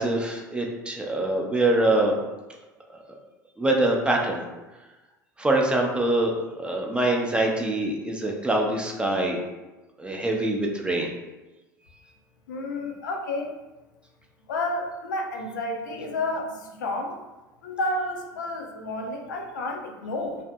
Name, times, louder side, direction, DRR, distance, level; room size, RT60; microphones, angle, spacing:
voice 1, 0.0-2.1 3.6-4.4 5.4-9.4 10.0-11.1, right 2 dB, 10° right, 0 dB, 0.4 m, -24 dB
voice 2, 12.5-13.5 14.5-17.2 17.6-20.4, left 2 dB, 70° left, 2 dB, 0.4 m, -30 dB
2.6 x 2.5 x 2.2 m, 1.1 s
figure-of-eight pair, 70°, 11 cm